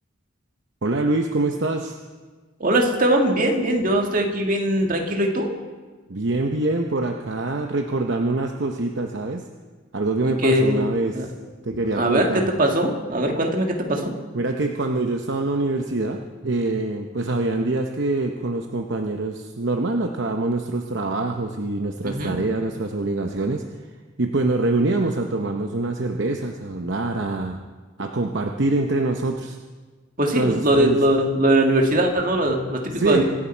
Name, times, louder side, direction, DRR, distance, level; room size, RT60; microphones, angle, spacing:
voice 1, 0.8-2.0 6.1-9.4 9.9-11.3 11.6-12.5 14.3-23.6 24.2-27.6 28.0-29.6 30.3-31.0 32.9-33.2, right 2 dB, 60° right, 3 dB, 0.8 m, -24 dB
voice 2, 2.6-5.5 10.2-10.8 11.1-11.3 12.0-14.1 22.0-22.4 30.2-33.2, right 1 dB, 40° right, 2 dB, 1.9 m, -21 dB
25.5 x 11.0 x 4.5 m, 1.4 s
head